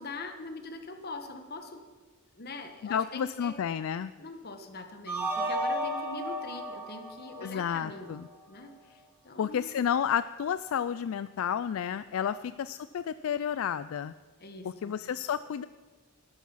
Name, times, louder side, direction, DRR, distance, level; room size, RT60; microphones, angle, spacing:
voice 1, 0.0-1.8 2.3-3.5 4.2-8.1 8.5-8.7 9.2-9.7 12.3-12.5 14.4-15.0, left 2 dB, 45° left, 6 dB, 1.4 m, -42 dB
voice 2, 2.8-4.1 7.4-8.3 9.4-14.1 14.6-15.7, left 8 dB, 70° left, 15 dB, 0.3 m, -31 dB
sound 1, 5.1-8.2, right 1 dB, 10° right, 2.4 m, -33 dB
13.0 x 12.0 x 5.7 m, 1.5 s
head